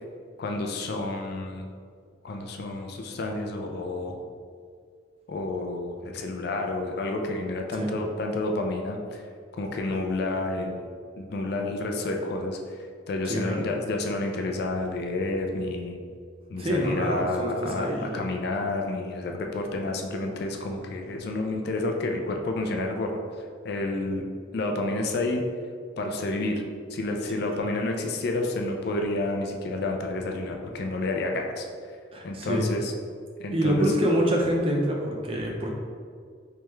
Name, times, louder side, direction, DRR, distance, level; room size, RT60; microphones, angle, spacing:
voice 1, 0.4-1.7 2.2-4.2 5.3-9.2 9.6-10.9 11.2-12.6 13.1-16.0 16.5-23.1 23.6-24.2 24.5-25.4 26.0-26.6 26.9-31.7 32.2-32.9 33.4-33.9, left 2 dB, 55° left, 2 dB, 0.4 m, -30 dB
voice 2, 13.3-13.6 16.6-18.3 27.3-27.7 32.1-32.7 33.5-35.7, equal, 30° right, -1 dB, 0.5 m, -26 dB
3.4 x 3.3 x 3.0 m, 2.1 s
head